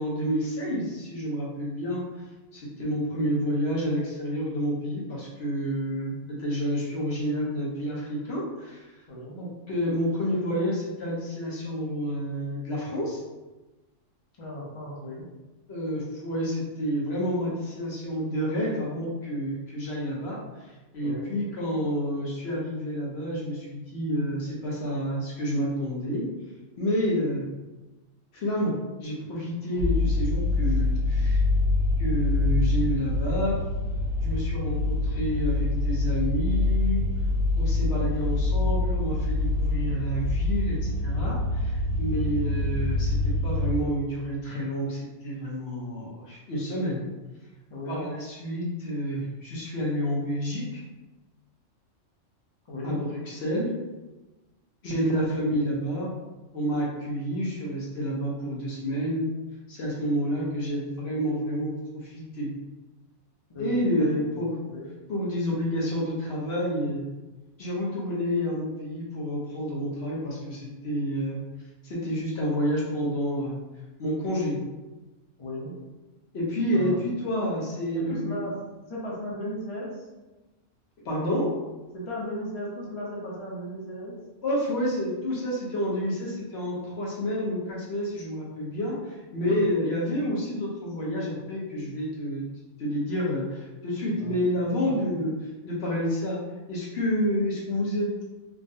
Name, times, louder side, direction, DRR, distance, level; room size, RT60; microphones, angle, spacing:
voice 1, 0.0-2.0 2.5-8.8 9.4-13.2 15.7-20.4 20.9-26.2 26.8-27.4 28.3-28.7 29.0-31.4 32.0-33.6 34.2-37.0 37.6-43.2 43.4-47.0 47.9-50.8 52.8-53.7 54.8-56.1 56.5-59.3 59.7-62.5 63.6-64.5 65.1-67.0 67.6-71.4 71.8-73.6 74.0-74.6 76.3-78.4 81.0-81.5 84.4-92.4 92.8-95.3 95.6-96.4 96.7-98.2, equal, 60° left, -5 dB, 1.0 m, -29 dB
voice 2, 14.4-15.3 21.0-21.3 29.7-30.1 47.7-48.0 52.7-53.0 63.5-64.9 75.4-75.7 76.7-77.0 77.9-78.5 78.9-80.0 81.9-84.2 89.4-89.6 94.2-94.4 94.8-95.2, equal, 30° left, -5 dB, 0.6 m, -36 dB
sound 1, 29.8-43.7, left 2 dB, 85° right, 1.3 m, -25 dB
3.6 x 2.1 x 2.6 m, 1.1 s
omnidirectional pair, 1.3 m